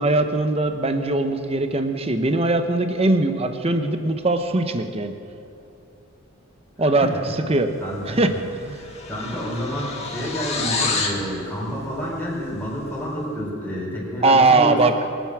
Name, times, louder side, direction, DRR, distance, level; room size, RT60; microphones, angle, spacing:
voice 1, 0.0-5.1 6.8-7.1 7.5-7.7 8.1-8.3 8.7-8.8 14.2-14.9, right 2 dB, 30° right, 7 dB, 0.9 m, -20 dB
voice 2, 6.8-7.2 7.8-8.2 8.8-14.8, equal, 10° left, -6 dB, 4.5 m, -29 dB
sound 1, 8.1-8.3 8.5-11.2, left 4 dB, 30° left, 1.8 m, -28 dB
23.5 x 9.2 x 6.2 m, 2.8 s
head